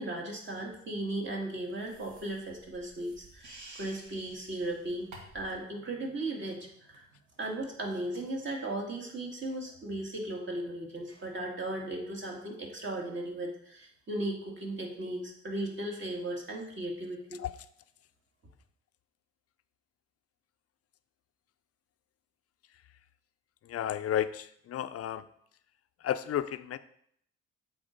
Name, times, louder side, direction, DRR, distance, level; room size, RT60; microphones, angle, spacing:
voice 1, 0.0-5.1 5.3-7.0 7.4-17.4, right 1 dB, 40° right, -1 dB, 2.1 m, -36 dB
sound 1, 1.8-5.6, right 2 dB, 75° right, 1.9 m, -52 dB
voice 2, 23.7-25.2 26.0-26.8, left 10 dB, 50° left, 12 dB, 0.5 m, -32 dB
7.8 x 4.0 x 5.2 m, 0.68 s
cardioid pair, 90°, 30 cm